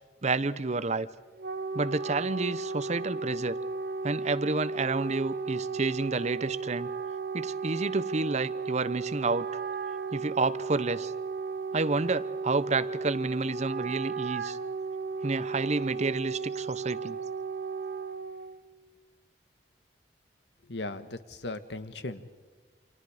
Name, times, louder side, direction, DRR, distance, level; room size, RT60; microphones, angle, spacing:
voice 1, 0.2-1.1 1.7-3.6 4.0-6.9 7.3-9.5 10.1-11.1 11.7-14.6 15.2-17.2, right 3 dB, 40° right, 15 dB, 0.8 m, -30 dB
Wind instrument woodwind instrument, 1.2-18.6, right 4 dB, 60° right, 1.0 m, -35 dB
voice 2, 20.7-22.3, left 2 dB, 80° left, 11 dB, 1.4 m, -37 dB
29.5 x 26.5 x 4.9 m, 1.4 s
head